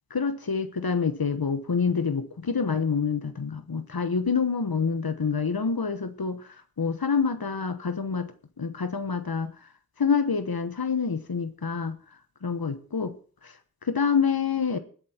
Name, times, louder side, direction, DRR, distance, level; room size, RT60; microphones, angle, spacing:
voice 1, 0.1-8.3 8.6-9.5 10.0-12.0 12.4-13.2 13.4-13.6 13.8-14.8, left 5 dB, 90° left, 11 dB, 1.1 m, -27 dB
19.5 x 7.6 x 4.4 m, 0.41 s
wide cardioid pair, 45°, 35 cm